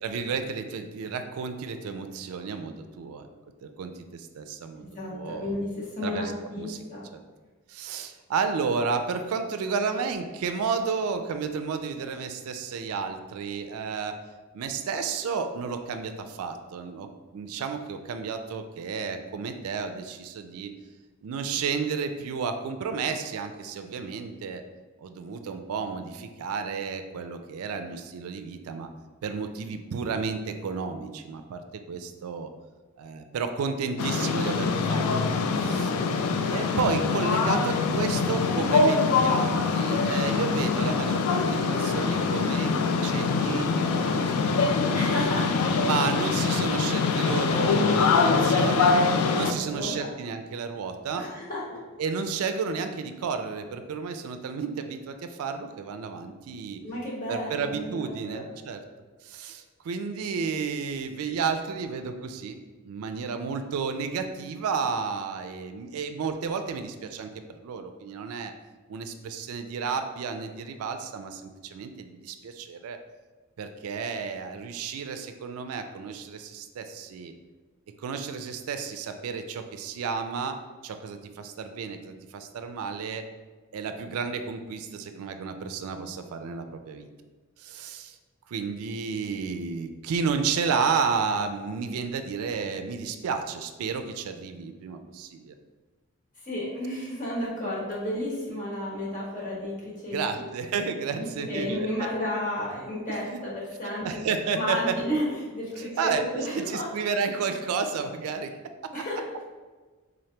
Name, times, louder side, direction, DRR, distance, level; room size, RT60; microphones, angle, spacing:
voice 1, 0.0-3.3 3.6-5.5 6.0-6.8 7.1-7.2 7.7-14.2 14.5-20.7 21.2-24.6 25.0-28.9 29.2-31.6 31.9-32.5 33.0-35.0 35.6-35.9 36.5-45.0 45.8-49.0 49.3-51.2 52.0-56.8 57.3-58.8 59.2-62.6 62.8-67.3 67.6-68.5 68.9-73.0 73.6-77.3 78.0-80.6 80.8-83.2 83.7-87.1 87.6-88.2 88.5-95.5 100.1-102.1 103.3-103.4 104.0-104.9 105.8-108.5 108.8-109.0, right 5 dB, 80° right, 7 dB, 0.3 m, -32 dB
voice 2, 4.8-7.1 35.5-36.1 44.9-45.7 49.6-50.1 51.2-51.9 56.8-58.4 96.4-100.4 101.1-104.3 104.5-106.9 108.9-109.3, left 1 dB, 40° left, -6 dB, 1.2 m, -32 dB
sound 1, 34.0-49.5, left 4 dB, 85° left, 0.3 m, -24 dB
3.9 x 3.2 x 2.8 m, 1.4 s
head